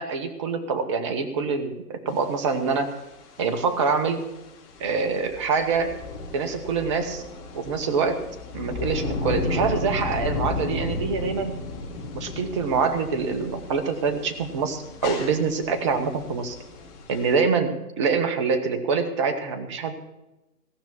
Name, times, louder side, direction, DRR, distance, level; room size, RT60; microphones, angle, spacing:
voice 1, 0.0-2.9 3.4-4.2 4.8-5.9 6.3-7.2 7.5-8.2 8.5-11.5 12.1-16.6 17.1-19.9, right 5 dB, 20° right, 8 dB, 0.9 m, -25 dB
sound 1, 2.1-17.4, left 3 dB, 25° left, 2.3 m, -34 dB
17.5 x 6.0 x 8.3 m, 0.96 s
hypercardioid pair, 145°, 45 cm